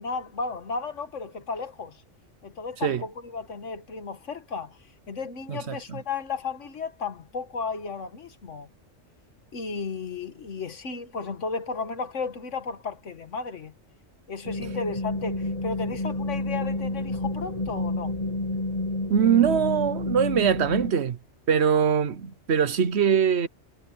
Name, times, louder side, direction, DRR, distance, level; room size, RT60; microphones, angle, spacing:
voice 1, 0.0-2.0 2.4-4.8 5.1-8.7 9.5-13.7 14.3-18.1, left 4 dB, 85° left, 1.8 m, -34 dB
voice 2, 5.5-6.0 19.1-21.2 21.5-23.5, right 8 dB, 65° right, 1.2 m, -22 dB
sound 1, 14.4-20.9, left 2 dB, 35° left, 1.6 m, -29 dB
omnidirectional pair, 1.2 m